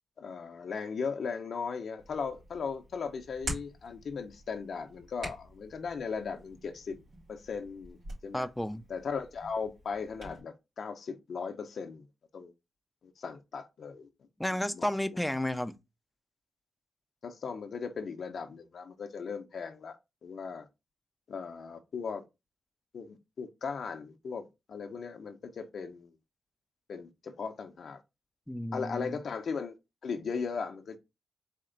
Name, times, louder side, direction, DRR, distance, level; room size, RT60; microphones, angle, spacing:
voice 1, 0.2-7.0 7.3-8.0 8.2-8.5 8.9-12.0 12.3-12.5 13.0-14.1 14.5-14.9 17.2-20.0 20.2-20.7 21.3-22.2 22.9-26.1 26.9-28.0 28.7-29.8 30.0-31.0, left 5 dB, 65° left, 0.5 m, -37 dB
Hands, 2.0-10.4, right 1 dB, 85° right, 2.6 m, -46 dB
voice 2, 8.3-8.8 14.4-15.7 28.5-29.1, left 1 dB, 5° left, 0.4 m, -32 dB
4.2 x 2.9 x 3.8 m
cardioid pair, 105°, 0 cm